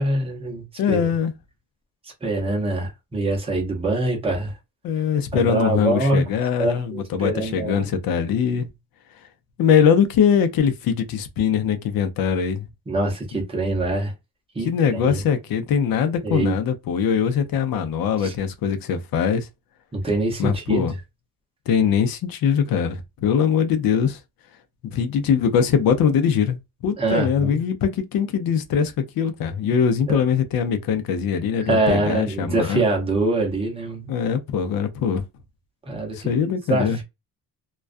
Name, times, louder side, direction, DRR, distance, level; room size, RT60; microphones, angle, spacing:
voice 1, 0.0-1.1 2.0-4.6 5.3-6.2 6.6-7.9 12.9-14.1 14.5-15.2 16.2-16.5 18.2-18.3 19.9-20.9 27.0-27.6 30.1-30.2 31.7-34.1 35.9-36.3 36.7-37.0, right 2 dB, 15° right, 0.7 m, -24 dB
voice 2, 0.8-1.3 4.8-8.7 9.6-12.7 14.6-19.5 20.4-20.9 21.7-24.2 24.8-32.9 34.1-35.2 36.1-37.0, left 7 dB, 65° left, 0.6 m, -22 dB
2.3 x 2.3 x 2.4 m
cardioid pair, 175°, 38 cm